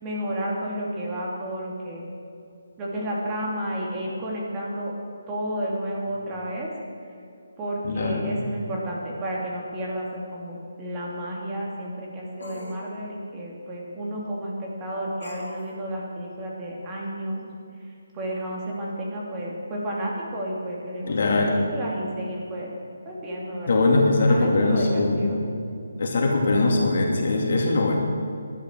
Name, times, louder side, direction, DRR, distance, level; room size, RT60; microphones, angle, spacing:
voice 1, 0.0-2.1 2.8-4.9 5.3-6.7 7.6-17.4 18.1-22.7 23.0-25.4, right 1 dB, 20° right, -4 dB, 2.9 m, -31 dB
voice 2, 7.8-8.5 21.1-21.7 23.7-25.5 26.0-27.9, left 2 dB, 50° left, 0 dB, 2.6 m, -21 dB
sound 1, 10.1-10.2 12.4-12.8 15.2-15.7, left 1 dB, 70° left, 3.2 m, -40 dB
18.5 x 12.0 x 4.7 m, 2.5 s
figure-of-eight pair, 145°, 0 cm